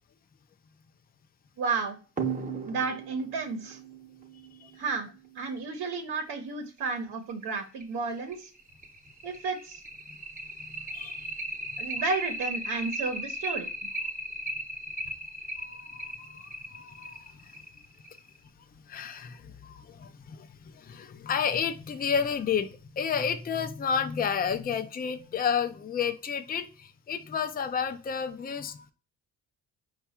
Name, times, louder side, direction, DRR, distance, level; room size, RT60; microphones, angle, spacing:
voice 1, 1.6-2.0 2.7-3.8 4.8-5.1 5.3-8.5 9.2-9.8 11.8-13.7, right 4 dB, 70° right, 4 dB, 0.9 m, -32 dB
sound 1, 2.2-5.3 6.8-6.9 7.3-7.4 7.8-7.9 8.3-18.4, right 2 dB, 20° right, 0.8 m, -36 dB
voice 2, 10.6-11.3 11.7-11.8 15.6-17.5 18.9-28.9, left 7 dB, 25° left, 8 dB, 0.5 m, -31 dB
4.7 x 2.4 x 4.2 m, 0.35 s
cardioid pair, 95°, 38 cm